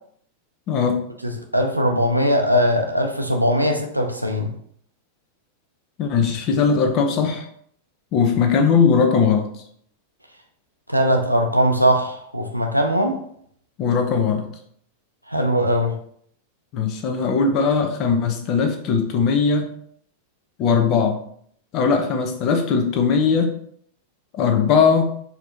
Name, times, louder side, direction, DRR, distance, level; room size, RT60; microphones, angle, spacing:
voice 1, 0.7-1.1 6.0-7.5 8.1-9.5 13.8-14.5 16.7-19.7 20.6-21.2 21.7-23.5 24.3-25.0, left 5 dB, 40° left, 5 dB, 0.8 m, -19 dB
voice 2, 1.2-4.5 10.9-13.2 15.3-16.0, equal, 90° right, 3 dB, 0.5 m, -20 dB
4.6 x 2.9 x 3.9 m, 0.65 s
figure-of-eight pair, 90°, 0 cm